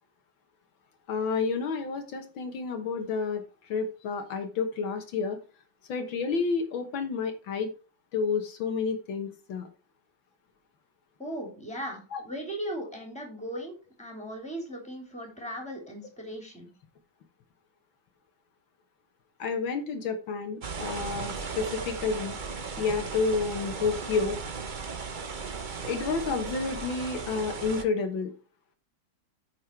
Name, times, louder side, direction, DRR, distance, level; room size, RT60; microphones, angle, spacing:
voice 1, 1.1-3.4 3.7-5.4 5.9-7.7 8.1-9.7 12.1-12.2 19.4-22.4 22.8-24.4 25.9-28.3, left 5 dB, 75° left, 6 dB, 2.0 m, -30 dB
voice 2, 11.2-16.7, right 1 dB, 5° left, 1 dB, 3.2 m, -38 dB
sound 1, 20.6-27.9, right 5 dB, 45° right, 0.6 m, -36 dB
8.9 x 6.3 x 4.5 m, 0.34 s
omnidirectional pair, 2.2 m